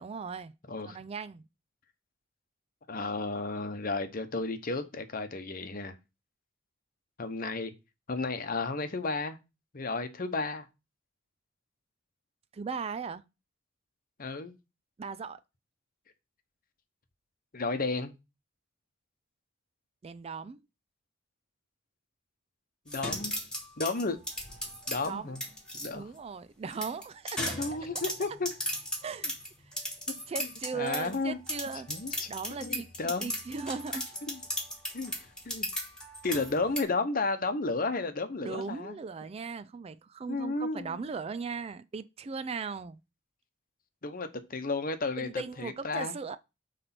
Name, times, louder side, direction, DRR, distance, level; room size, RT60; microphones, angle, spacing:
voice 1, 0.0-0.5 0.9-1.4 12.5-13.2 15.0-15.4 20.0-20.6 25.0-25.3 25.9-27.6 28.2-28.4 29.0-29.4 29.7-29.8 30.3-31.9 32.3-34.1 38.4-43.0 45.2-46.4, right 5 dB, 30° right, 0.3 m, -38 dB
voice 2, 2.9-5.9 7.2-7.7 8.1-9.4 9.7-10.7 14.2-14.5 17.5-18.1 22.9-23.3 23.8-24.2 24.9-25.4 25.7-26.1 27.6-28.5 30.4-30.5 30.7-31.4 31.9-32.3 32.6-33.3 34.3-34.4 34.9-35.1 35.4-35.7 36.2-39.0 40.3-41.0 44.0-46.2, left 3 dB, 45° left, 0.9 m, -33 dB
sound 1, 22.9-25.9 26.7-31.2 31.5-36.8, left 1 dB, 5° left, 1.9 m, -36 dB
7.8 x 3.3 x 5.9 m
head